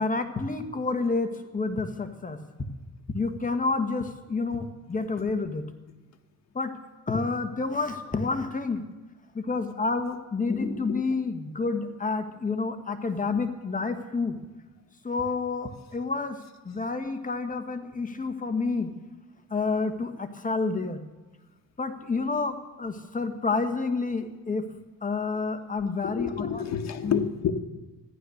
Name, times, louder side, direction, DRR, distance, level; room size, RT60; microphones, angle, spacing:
voice 1, 0.0-2.4 3.1-5.7 6.5-6.7 7.1-8.8 9.3-14.4 15.0-16.4 16.6-18.9 19.5-21.0 21.8-24.6 25.0-26.6 27.0-27.2, left 4 dB, 25° left, 7 dB, 1.6 m, -29 dB
voice 2, 10.5-11.0 26.0-27.5, left 8 dB, 60° left, 6 dB, 1.5 m, -30 dB
14.5 x 11.5 x 6.6 m, 1.2 s
cardioid pair, 90°, 30 cm